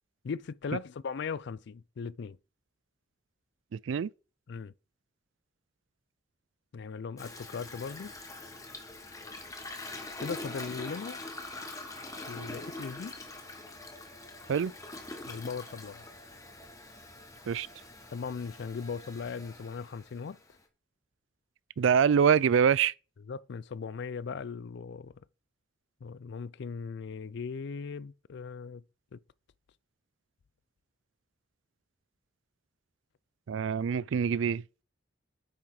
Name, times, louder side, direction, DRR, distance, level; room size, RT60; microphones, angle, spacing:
voice 1, 0.2-2.4 4.5-4.7 6.7-8.1 10.2-11.2 12.3-13.2 15.2-16.0 18.1-20.4 23.3-25.1 26.0-28.8 29.1-29.2, left 5 dB, 60° left, 0.4 m, -38 dB
voice 2, 3.7-4.1 14.5-14.7 17.5-17.7 21.8-22.9 33.5-34.6, right 7 dB, 75° right, 0.4 m, -25 dB
Toilet flush, 7.2-20.6, left 2 dB, 20° left, 1.4 m, -44 dB
8.7 x 5.8 x 4.8 m
head